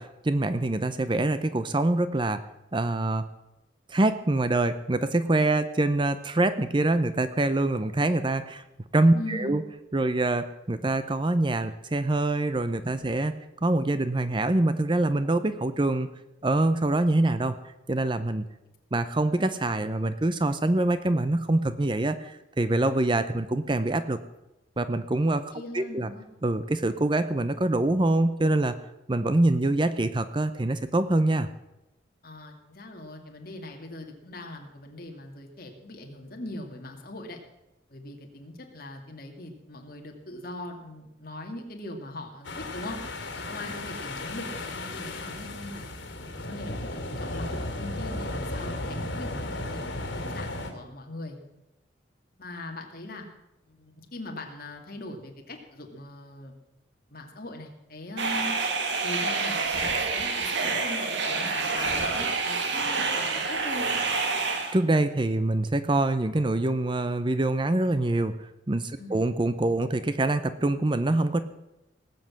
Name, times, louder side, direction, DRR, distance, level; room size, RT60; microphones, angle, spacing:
voice 1, 0.0-2.4 2.7-3.3 3.9-8.6 8.9-9.6 9.9-13.3 13.6-16.1 16.4-18.5 18.9-24.2 24.8-26.1 26.4-28.8 29.1-31.5 64.7-71.4, right 2 dB, 25° right, 12 dB, 0.6 m, -25 dB
voice 2, 9.1-9.6 25.5-26.3 32.2-37.4 37.9-43.0 43.3-45.9 46.4-47.5 47.8-51.4 52.4-53.3 53.7-56.5 57.1-58.6 59.0-64.0 69.0-69.2, left 1 dB, 50° left, 2 dB, 2.3 m, -40 dB
sound 1, 42.4-50.7, left 2 dB, 85° left, 2.4 m, -35 dB
sound 2, 58.2-64.8, right 4 dB, 65° right, 1.8 m, -27 dB
19.0 x 7.8 x 7.4 m, 0.94 s
head